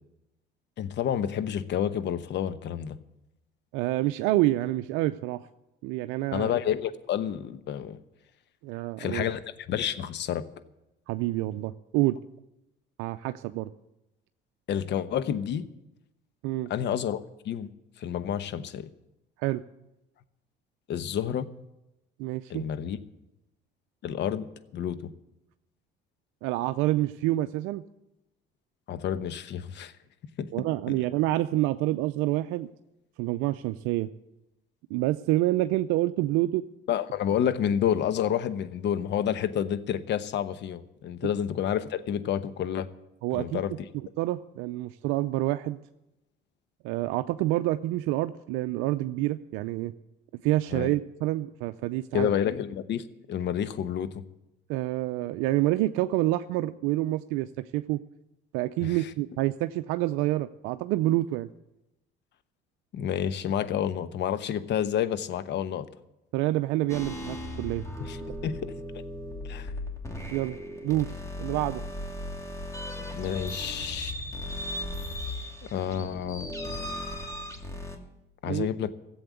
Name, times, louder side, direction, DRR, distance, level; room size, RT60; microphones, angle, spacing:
voice 1, 0.8-3.0 6.3-8.0 9.0-9.4 9.7-10.4 14.7-15.6 16.7-17.2 17.4-17.7 18.0-18.9 20.9-21.5 22.5-23.0 24.0-24.5 24.7-25.1 28.9-29.9 30.4-30.5 30.9-31.0 36.9-42.9 43.3-43.7 50.7-50.9 52.1-54.2 58.8-59.0 62.9-65.9 68.0-68.6 69.4-69.7 73.1-74.1 75.7-76.5 78.4-78.9, left 9 dB, 60° left, 12 dB, 1.0 m, -29 dB
voice 2, 3.7-5.4 5.8-6.5 8.6-9.3 11.1-12.2 13.0-13.7 16.4-16.7 19.4-19.6 22.2-22.6 26.4-27.8 30.5-32.7 33.2-34.1 34.9-36.6 43.2-43.6 43.9-45.8 46.8-49.9 50.4-52.3 54.7-58.0 58.5-61.5 66.3-67.8 70.3-70.6 70.8-71.1 71.4-71.8 78.4-78.7, right 16 dB, 75° right, 10 dB, 0.5 m, -27 dB
sound 1, 66.9-78.0, left 1 dB, 15° left, 2.5 m, -37 dB
14.5 x 7.9 x 8.2 m, 0.91 s
supercardioid pair, 75°, 21 cm